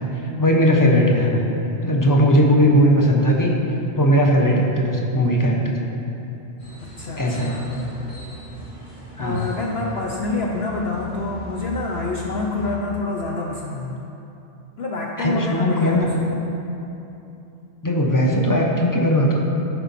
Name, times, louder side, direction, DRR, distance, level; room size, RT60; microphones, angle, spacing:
voice 1, 0.0-1.5 1.8-3.6 4.0-5.8 7.2-7.6 9.2-9.5 15.2-16.2 17.8-19.4, equal, 20° left, -1 dB, 0.7 m, -18 dB
sound 1, 6.6-12.7, right 1 dB, 40° left, 1.8 m, -38 dB
voice 2, 6.8-7.9 9.2-14.0 14.8-16.4, left 3 dB, 60° left, -1 dB, 0.8 m, -27 dB
12.5 x 5.2 x 4.1 m, 2.9 s
omnidirectional pair, 1.3 m